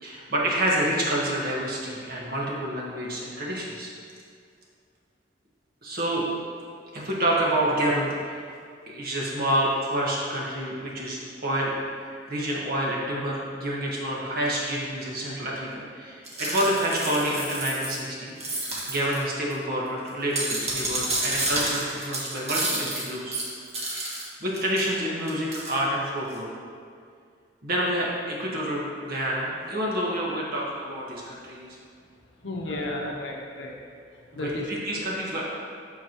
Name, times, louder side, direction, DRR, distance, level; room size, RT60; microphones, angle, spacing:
voice 1, 0.0-3.9 5.8-6.2 6.9-8.5 8.9-11.7 12.3-23.4 23.9-24.1 24.4-26.5 27.6-31.7 32.7-32.8 34.3-35.4, right 1 dB, 55° right, -4 dB, 1.4 m, -28 dB
sound 1, 16.2-18.0 18.4-19.2 19.5-19.6 20.1-24.2 24.5-24.8 25.3-25.7, right 2 dB, 35° right, 1.4 m, -30 dB
voice 2, 32.4-33.8 34.1-35.1, left 1 dB, 70° left, 0 dB, 0.9 m, -34 dB
8.2 x 6.1 x 3.0 m, 2.2 s
head